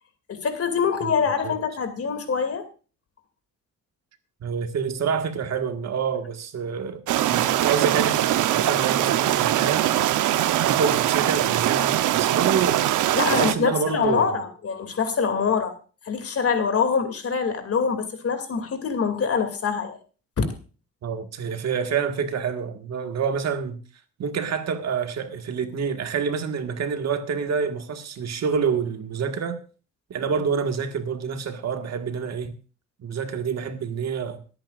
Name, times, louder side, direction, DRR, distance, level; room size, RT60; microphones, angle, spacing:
voice 1, 0.3-2.7 13.1-15.8 16.0-20.0 20.4-20.5, left 6 dB, 50° left, 2.6 m, -24 dB
voice 2, 1.0-1.5 4.4-7.0 7.3-10.1 10.6-12.9 13.3-14.4 21.0-23.8 24.2-29.6 30.1-32.6 33.0-34.4, right 6 dB, 60° right, 1.7 m, -27 dB
sound 1, 7.1-13.5, right 13 dB, 85° right, 0.9 m, -22 dB
25.0 x 8.9 x 2.5 m
cardioid pair, 90°, 30 cm